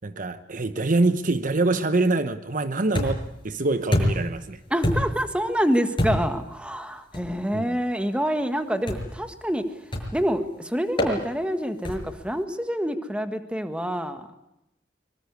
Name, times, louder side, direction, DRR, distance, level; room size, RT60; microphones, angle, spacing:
voice 1, 0.0-4.6 7.5-7.7, right 2 dB, 45° right, 11 dB, 1.0 m, -25 dB
sound 1, 2.9-3.4 3.9-4.4 4.8-5.3 6.0-6.4 7.1-7.3 8.9-9.2 9.9-10.3 11.0-11.2 11.8-12.2, left 1 dB, 30° left, 5.8 m, -26 dB
voice 2, 4.7-9.7 10.1-14.3, equal, 5° right, 8 dB, 1.7 m, -27 dB
24.0 x 23.0 x 8.4 m, 0.87 s
head